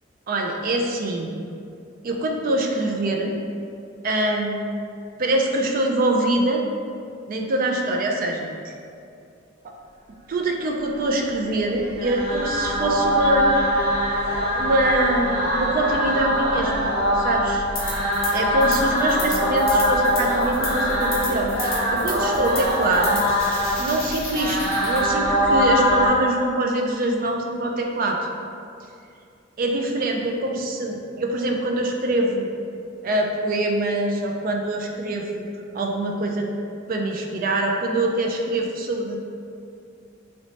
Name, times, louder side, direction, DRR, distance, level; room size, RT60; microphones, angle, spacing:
voice 1, 0.3-1.3 2.0-3.4 4.0-4.6 5.2-6.6 7.3-8.7 10.3-13.5 14.6-16.9 17.2-17.6 18.3-23.2 23.8-24.6 24.8-28.2 29.6-32.5 33.0-35.4 35.7-36.5 36.9-39.2, right 2 dB, 45° right, 2 dB, 0.4 m, -24 dB
sound 1, 11.7-26.1, equal, 70° right, 1.1 m, -22 dB
sound 2, 17.8-18.3 18.6-25.0, left 3 dB, 50° left, 0.7 m, -34 dB
3.1 x 3.0 x 2.8 m, 2.4 s
head